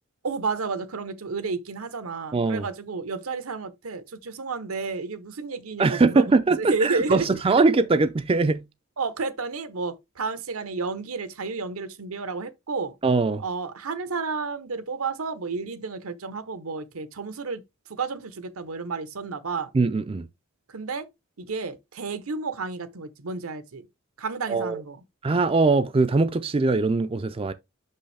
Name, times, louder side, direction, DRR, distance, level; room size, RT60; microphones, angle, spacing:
voice 1, 0.2-6.3 6.6-7.3 9.0-13.0 13.4-17.6 17.9-19.7 20.7-21.1 21.4-23.9 24.2-25.0, right 4 dB, 80° right, 0.9 m, -31 dB
voice 2, 2.3-2.7 5.8-8.6 13.0-13.4 19.7-20.2 24.5-24.8 25.2-27.5, right 3 dB, 25° right, 0.4 m, -21 dB
6.3 x 5.5 x 3.3 m
head